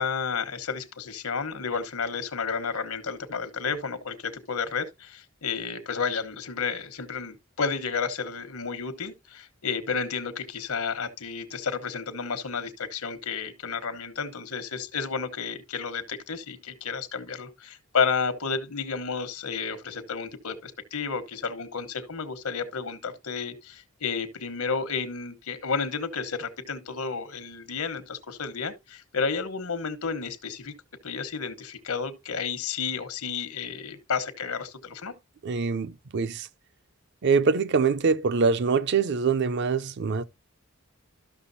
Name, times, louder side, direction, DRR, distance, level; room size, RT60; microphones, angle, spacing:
voice 1, 0.0-30.7 31.0-35.1, left 5 dB, 90° left, 1.1 m, -31 dB
voice 2, 35.4-36.5 37.2-40.2, right 5 dB, 55° right, 0.5 m, -24 dB
13.0 x 6.0 x 2.6 m
head